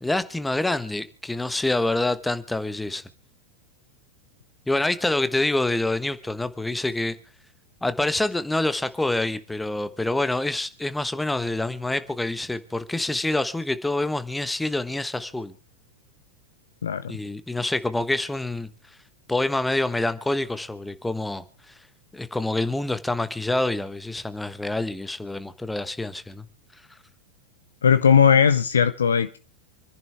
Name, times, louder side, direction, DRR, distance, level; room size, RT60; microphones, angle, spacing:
voice 1, 0.0-3.0 4.7-7.1 7.8-15.5 17.1-18.7 19.3-21.4 22.1-26.4, left 2 dB, 5° left, 1.2 m, -26 dB
voice 2, 27.8-29.4, left 7 dB, 70° left, 0.7 m, -18 dB
28.0 x 11.0 x 3.4 m
figure-of-eight pair, 90°, 0 cm